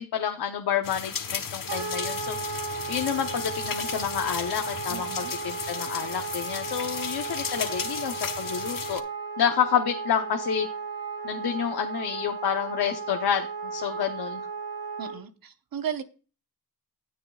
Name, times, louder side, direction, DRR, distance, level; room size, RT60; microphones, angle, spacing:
voice 1, 0.0-2.4 2.9-9.0 9.4-10.7 11.2-14.5, left 8 dB, 80° left, 0.9 m, -29 dB
sound 1, 0.8-9.0, left 7 dB, 60° left, 1.2 m, -35 dB
Wind instrument woodwind instrument, 1.7-15.2, right 4 dB, 85° right, 4.1 m, -35 dB
voice 2, 4.9-5.3 15.0-16.0, right 8 dB, 65° right, 1.0 m, -35 dB
16.5 x 6.5 x 2.4 m
cardioid pair, 55°, 37 cm